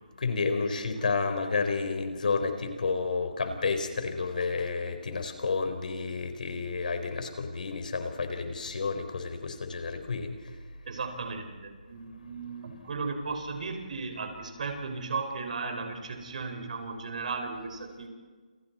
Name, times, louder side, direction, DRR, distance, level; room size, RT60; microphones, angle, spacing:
voice 1, 0.2-10.3, left 4 dB, 70° left, 7 dB, 4.1 m, -30 dB
voice 2, 10.9-18.1, right 4 dB, 60° right, 5 dB, 5.4 m, -35 dB
28.5 x 28.0 x 4.3 m, 1.5 s
hypercardioid pair, 160°, 5 cm